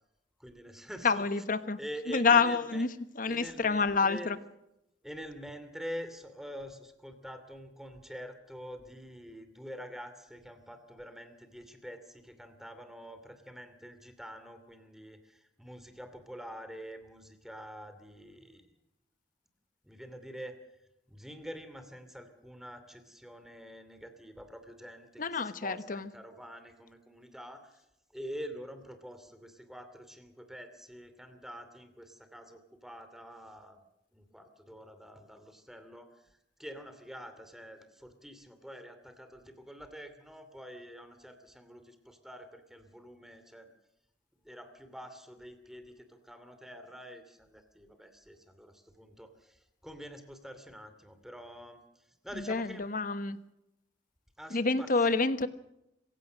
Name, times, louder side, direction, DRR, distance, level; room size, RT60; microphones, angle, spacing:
voice 1, 0.4-1.4 1.8-2.8 3.3-4.3 5.0-18.7 19.8-20.6 21.1-27.8 28.1-33.8 34.1-43.7 44.4-52.9 54.4-55.1, equal, ahead, 8 dB, 2.7 m, -46 dB
voice 2, 1.0-1.8 2.1-2.9 3.2-4.4 25.2-26.1 52.4-53.4 54.5-55.5, left 4 dB, 50° left, 12 dB, 1.2 m, -28 dB
26.0 x 16.0 x 6.4 m, 0.85 s
head